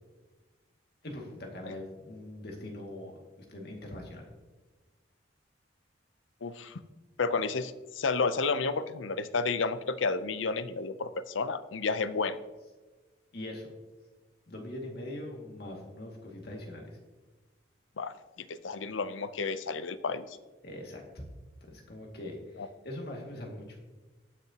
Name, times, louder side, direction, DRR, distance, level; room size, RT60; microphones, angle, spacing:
voice 1, 1.0-4.2 13.3-13.7 14.5-17.0 20.6-21.2 21.6-23.8, left 1 dB, 55° left, 0 dB, 2.2 m, -42 dB
voice 2, 6.4-6.8 7.2-12.4 18.0-18.1 18.5-20.4 22.6-22.7, left 4 dB, 90° left, 13 dB, 0.6 m, -31 dB
19.0 x 6.7 x 2.9 m, 1.2 s
head